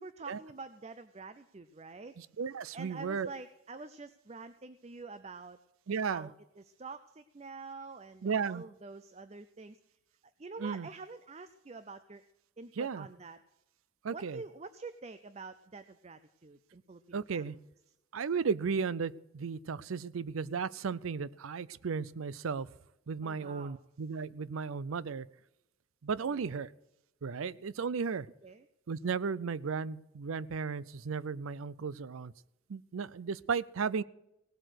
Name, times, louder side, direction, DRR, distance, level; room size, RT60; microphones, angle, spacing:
voice 1, 0.0-2.2 2.7-5.6 6.1-9.8 10.4-12.2 12.6-13.4 14.1-17.6 23.2-23.8 26.3-26.6 28.4-28.6, right 4 dB, 30° right, 12 dB, 0.5 m, -47 dB
voice 2, 2.2-3.3 5.9-6.3 8.2-8.6 10.6-10.9 12.8-13.1 14.0-14.4 17.1-17.6 18.1-22.7 23.1-25.3 26.0-26.7 27.2-28.3 28.9-32.3 32.7-34.0, right 5 dB, 85° right, 19 dB, 0.5 m, -35 dB
17.5 x 7.8 x 6.4 m, 0.87 s
head